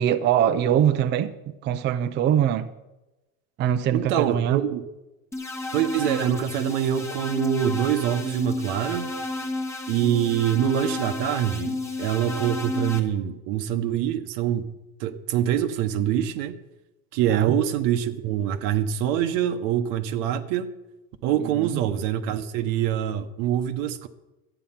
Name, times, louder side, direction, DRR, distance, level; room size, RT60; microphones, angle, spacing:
voice 1, 0.0-1.3 1.6-2.7 3.6-4.6 17.3-17.5 21.4-21.8, right 10 dB, 30° right, 0.4 m, -23 dB
voice 2, 3.9-4.8 5.7-9.1 9.9-14.7 15.0-16.6 17.1-20.7 21.2-24.1, right 10 dB, 85° right, 1.0 m, -25 dB
sound 1, 5.3-13.0, left 2 dB, 5° left, 0.9 m, -32 dB
13.0 x 9.0 x 5.7 m
cardioid pair, 155°, 37 cm